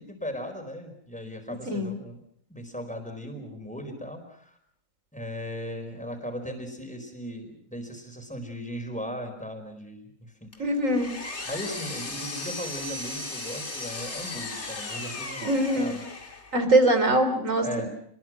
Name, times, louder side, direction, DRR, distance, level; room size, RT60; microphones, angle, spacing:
voice 1, 0.0-2.2 2.5-4.5 5.1-10.7 11.4-16.0 17.6-17.9, equal, 5° left, 4 dB, 4.9 m, -37 dB
voice 2, 1.7-2.0 10.6-11.1 15.4-16.0 16.5-17.9, right 1 dB, 75° right, 8 dB, 3.9 m, -23 dB
Power tool, 10.5-16.6, left 2 dB, 55° left, 2.7 m, -36 dB
28.5 x 21.5 x 6.3 m, 0.69 s
omnidirectional pair, 1.4 m